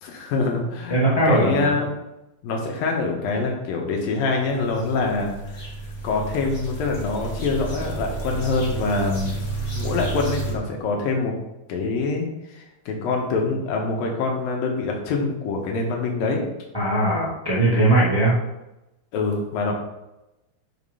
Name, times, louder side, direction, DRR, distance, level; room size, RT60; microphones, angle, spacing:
voice 1, 0.0-1.9 2.4-5.7 6.0-9.4 9.7-11.3 11.7-12.3 12.5-16.4 19.1-19.7, left 3 dB, 80° left, 1 dB, 3.0 m, -25 dB
voice 2, 0.9-1.8 16.7-18.3, right 1 dB, 10° right, -7 dB, 1.6 m, -19 dB
sound 1, 4.3-10.5, right 3 dB, 60° left, 0.7 m, -31 dB
8.2 x 5.2 x 5.6 m, 0.95 s
omnidirectional pair, 4.1 m